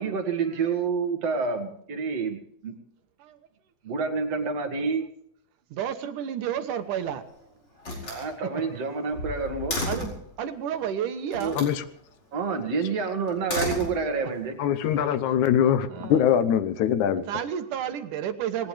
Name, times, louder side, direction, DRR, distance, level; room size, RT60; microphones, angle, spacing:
voice 1, 0.0-2.7 3.8-5.1 8.0-9.7 11.4-11.6 12.3-14.6, right 5 dB, 55° right, 2.9 m, -28 dB
voice 2, 5.7-7.3 8.5-8.6 9.9-11.6 15.9-16.2 17.3-18.7, right 9 dB, 80° right, 2.7 m, -31 dB
Slam, 6.7-7.3 7.8-10.3 11.3-11.8 13.3-14.4, left 2 dB, 40° left, 5.4 m, -33 dB
voice 3, 14.6-17.2, left 9 dB, 75° left, 2.3 m, -22 dB
19.5 x 19.0 x 3.4 m
omnidirectional pair, 3.5 m